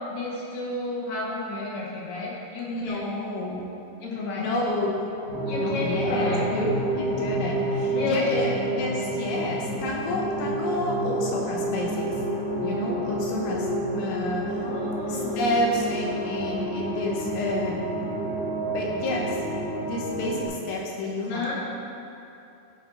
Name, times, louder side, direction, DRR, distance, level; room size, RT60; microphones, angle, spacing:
voice 1, 0.1-3.1 4.0-4.5 5.5-6.5 7.9-8.4 14.6-15.5 21.2-21.5, left 3 dB, 65° left, -5 dB, 2.4 m, -31 dB
voice 2, 2.7-3.6 4.4-5.1 5.6-12.1 12.6-14.7 15.1-17.8 18.7-19.4 19.9-21.5, left 1 dB, 90° left, -2 dB, 3.5 m, -29 dB
sound 1, 5.3-20.5, right 1 dB, 35° left, 2.2 m, -29 dB
13.0 x 5.2 x 4.0 m, 2.7 s
omnidirectional pair, 5.1 m